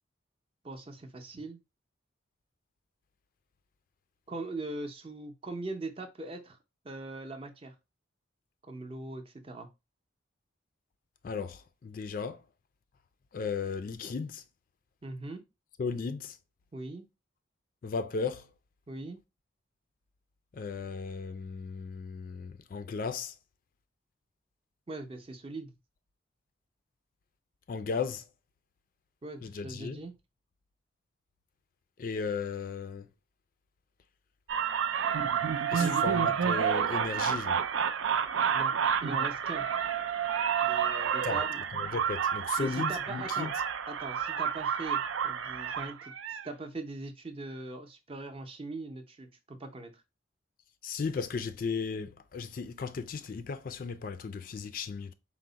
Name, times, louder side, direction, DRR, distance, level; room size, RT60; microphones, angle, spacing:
voice 1, 0.6-1.6 4.3-6.6 6.8-7.7 8.6-9.7 15.0-15.4 16.7-17.0 18.9-19.2 24.9-25.7 29.2-30.1 35.8-36.0 38.5-38.7 39.0-39.6 40.6-41.6 42.6-43.5 43.9-49.9, right 2 dB, 30° right, 0.5 m, -41 dB
voice 2, 11.2-12.4 13.3-14.4 15.8-16.4 17.8-18.5 20.5-23.4 27.7-28.2 29.4-30.0 32.0-33.1 35.7-37.6 41.2-41.4 41.7-43.5 50.8-55.1, left 5 dB, 45° left, 0.3 m, -35 dB
sound 1, 34.5-46.5, right 7 dB, 85° right, 0.4 m, -30 dB
4.5 x 2.1 x 3.8 m
head